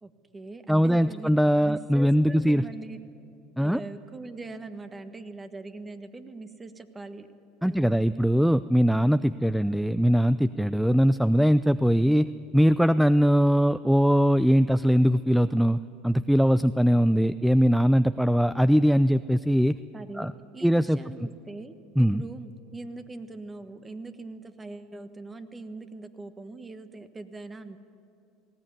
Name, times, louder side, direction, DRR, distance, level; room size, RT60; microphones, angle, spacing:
voice 1, 0.0-3.0 3.6-7.3 7.6-8.1 19.9-27.8, right 3 dB, 20° right, 10 dB, 1.5 m, -42 dB
voice 2, 0.7-2.6 3.6-3.8 7.6-12.3 12.5-19.8 20.2-20.3 20.6-21.3 22.0-22.2, equal, ahead, 15 dB, 0.4 m, -21 dB
19.0 x 17.0 x 9.7 m, 2.6 s
supercardioid pair, 90°, 0 cm